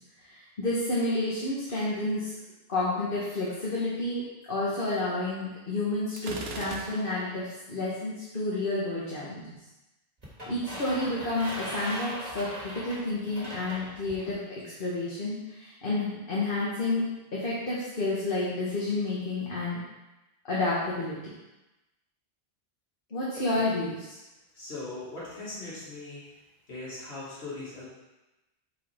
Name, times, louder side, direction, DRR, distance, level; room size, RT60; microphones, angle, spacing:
voice 1, 0.2-2.4 2.7-9.4 10.5-17.1 17.3-19.8 20.5-21.3 23.1-24.2, left 2 dB, 60° left, -7 dB, 1.5 m, -30 dB
Gunshot gunfire, 6.2-7.4, right 3 dB, 75° right, 1.1 m, -39 dB
sound 1, 10.2-14.3, right 1 dB, 40° right, 2.0 m, -40 dB
voice 2, 24.5-26.4 26.7-27.8, left 2 dB, 90° left, -9 dB, 2.3 m, -39 dB
8.2 x 4.7 x 3.5 m, 1.0 s
omnidirectional pair, 1.1 m